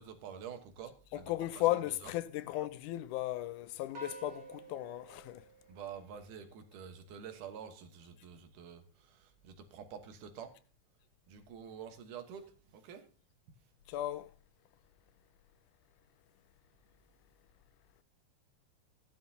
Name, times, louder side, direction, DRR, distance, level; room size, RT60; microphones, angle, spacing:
voice 1, 0.0-1.6 2.0-2.1 5.7-10.5 11.3-13.0, right 7 dB, 85° right, 2.8 m, -48 dB
voice 2, 1.1-5.4 13.9-14.3, left 15 dB, 80° left, 2.1 m, -35 dB
sound 1, 3.9-6.5, right 3 dB, 50° right, 1.9 m, -51 dB
15.5 x 11.0 x 2.8 m
omnidirectional pair, 3.6 m